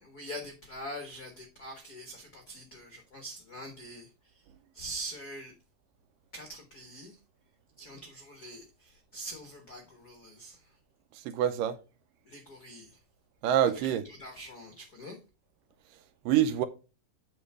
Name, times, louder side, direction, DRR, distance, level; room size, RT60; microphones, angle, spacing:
voice 1, 0.0-4.5 4.7-5.5 6.3-7.2 7.8-10.8 12.2-13.0 13.6-15.2, right 1 dB, 75° left, 0.8 m, -44 dB
voice 2, 11.3-11.8 13.4-14.0 16.3-16.7, right 10 dB, 80° right, 2.2 m, -25 dB
8.0 x 5.2 x 4.7 m
omnidirectional pair, 4.1 m